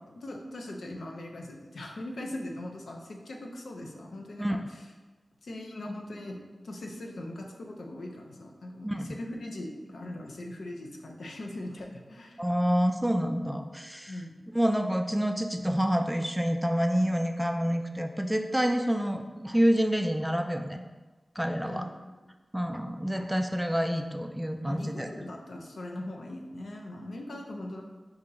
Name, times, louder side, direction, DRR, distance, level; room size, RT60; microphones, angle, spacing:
voice 1, 0.1-4.9 5.4-6.4 6.6-12.4 14.1-14.4 21.6-21.9 22.3-22.4 24.7-27.8, left 1 dB, 85° left, 1 dB, 0.6 m, -40 dB
voice 2, 8.8-9.1 12.4-14.2 14.5-20.8 21.4-21.9 22.5-25.1, equal, 10° right, 5 dB, 0.4 m, -28 dB
4.1 x 2.8 x 3.8 m, 1.3 s
cardioid pair, 40°, 0 cm